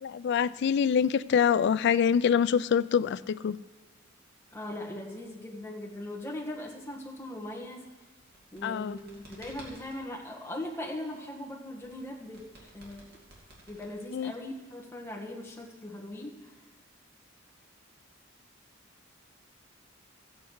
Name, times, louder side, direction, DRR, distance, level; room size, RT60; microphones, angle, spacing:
voice 1, 0.0-3.6 8.6-9.0 14.1-14.3, left 7 dB, 55° left, 17 dB, 0.3 m, -25 dB
voice 2, 4.5-7.9 8.5-13.1 13.7-16.5, left 1 dB, 10° left, -2 dB, 1.5 m, -40 dB
sound 1, 8.2-10.0 11.8-14.4, right 1 dB, 50° right, 2.3 m, -52 dB
14.5 x 8.4 x 4.6 m, 1.3 s
head